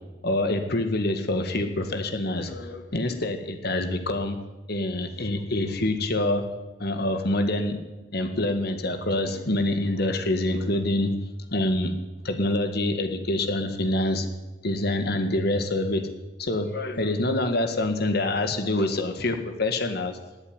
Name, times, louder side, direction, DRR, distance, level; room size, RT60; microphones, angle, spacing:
voice 1, 0.2-4.4 4.7-6.5 6.8-7.8 8.1-11.2 11.5-11.9 12.2-14.3 14.6-16.1 16.4-20.2, left 1 dB, 60° left, 7 dB, 1.8 m, -26 dB
17.5 x 8.3 x 9.6 m, 1.1 s
head